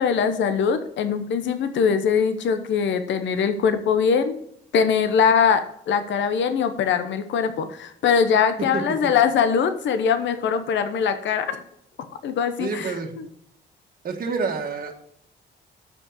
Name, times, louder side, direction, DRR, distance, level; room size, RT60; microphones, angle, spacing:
voice 1, 0.0-4.4 4.7-11.6 12.2-13.3, left 6 dB, 70° left, 9 dB, 0.9 m, -22 dB
voice 2, 12.6-13.2 14.0-14.9, right 4 dB, 45° right, 2 dB, 1.6 m, -28 dB
7.1 x 5.4 x 6.9 m, 0.70 s
cardioid pair, 90°, 20 cm